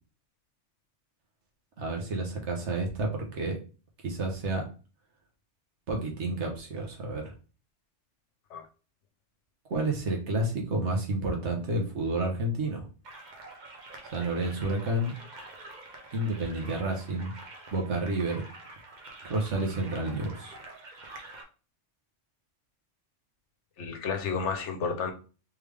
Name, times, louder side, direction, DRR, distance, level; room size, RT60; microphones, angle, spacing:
voice 1, 1.8-3.6 4.0-4.6 5.9-7.3 9.7-12.8 14.1-15.1 16.1-17.3 17.7-18.4 19.2-20.5, right 2 dB, 70° right, 1 dB, 1.3 m, -30 dB
sound 1, 13.0-21.4, right 2 dB, 40° right, 0.9 m, -47 dB
voice 2, 23.8-25.1, left 5 dB, 70° left, 5 dB, 1.1 m, -31 dB
3.6 x 3.3 x 3.4 m, 0.35 s
omnidirectional pair, 1.2 m